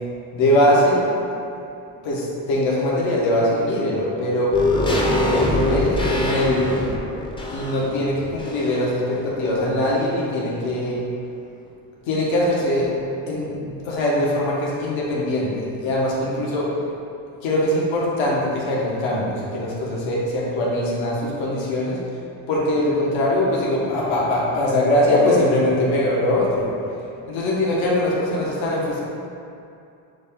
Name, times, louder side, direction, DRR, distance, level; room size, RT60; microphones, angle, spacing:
voice 1, 0.3-1.0 2.0-4.6 5.1-6.8 7.5-11.0 12.1-12.9 13.3-16.7 17.4-22.0 22.5-26.7 27.3-29.0, left 1 dB, 75° left, -5 dB, 1.1 m, -21 dB
sound 1, 4.5-9.0 9.3-9.4, left 1 dB, 10° left, 0.5 m, -23 dB
6.3 x 2.2 x 3.6 m, 2.6 s
cardioid pair, 100°, 47 cm